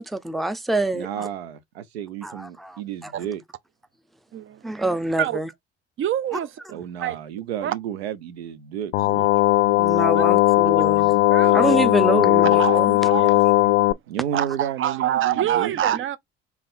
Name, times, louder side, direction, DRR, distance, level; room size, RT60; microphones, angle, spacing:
voice 1, 0.0-1.3 2.2-3.1 4.6-5.5 6.3-6.4 9.7-11.2 11.5-13.5, right 1 dB, ahead, 0.5 m, -26 dB
voice 2, 0.9-3.4 6.7-9.3 12.0-12.5 14.1-15.7, right 10 dB, 80° right, 0.6 m, -32 dB
voice 3, 6.0-6.5 7.0-7.2 7.6-7.7 9.0-9.1 10.2-10.3 10.8-10.9 11.3-11.8 12.5-13.9 14.3-16.2, right 11 dB, 40° right, 0.6 m, -26 dB
sound 1, 8.9-13.9, left 17 dB, 75° left, 0.5 m, -18 dB
3.7 x 3.0 x 3.6 m
figure-of-eight pair, 50°, 31 cm